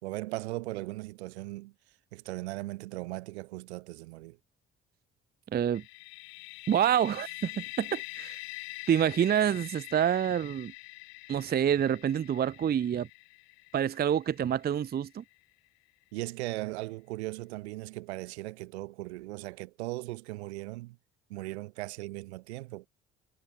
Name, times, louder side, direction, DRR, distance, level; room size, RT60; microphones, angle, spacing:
voice 1, 0.0-1.7 2.1-4.4 16.1-21.0 21.3-22.9, right 20 dB, 80° right, 1.9 m, -38 dB
voice 2, 5.5-5.8 6.7-8.4 8.9-10.7 11.3-13.1 13.7-15.2, right 9 dB, 30° right, 0.5 m, -27 dB
sound 1, 5.7-15.4, left 29 dB, 75° left, 0.9 m, -45 dB
hypercardioid pair, 50°, 32 cm